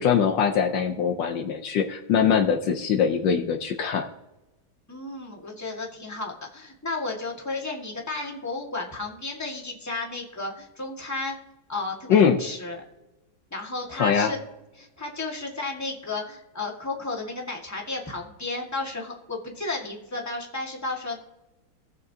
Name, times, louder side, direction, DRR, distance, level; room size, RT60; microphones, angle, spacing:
voice 1, 0.0-4.1 12.1-12.4 14.0-14.3, left 7 dB, 70° left, 4 dB, 1.4 m, -22 dB
voice 2, 4.9-11.4 11.7-12.8 13.5-14.4 14.8-21.2, left 3 dB, 10° left, -1 dB, 1.6 m, -33 dB
18.5 x 6.7 x 2.8 m, 1.0 s
omnidirectional pair, 2.2 m